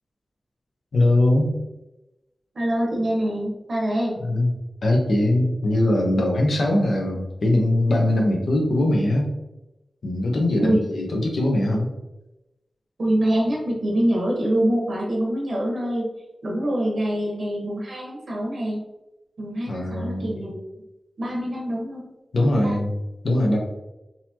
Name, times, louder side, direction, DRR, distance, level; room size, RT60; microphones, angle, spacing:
voice 1, 0.9-1.5 4.2-4.5 4.8-9.3 10.0-11.9 19.7-20.4 22.3-23.0 23.2-23.6, left 1 dB, 75° left, 0 dB, 0.9 m, -21 dB
voice 2, 2.5-4.2 10.6-10.8 13.0-16.1 16.4-18.8 19.4-20.7 21.2-22.1 22.4-22.8, right 1 dB, 70° right, -2 dB, 1.2 m, -25 dB
4.0 x 2.9 x 2.9 m, 0.97 s
wide cardioid pair, 95°, 0 cm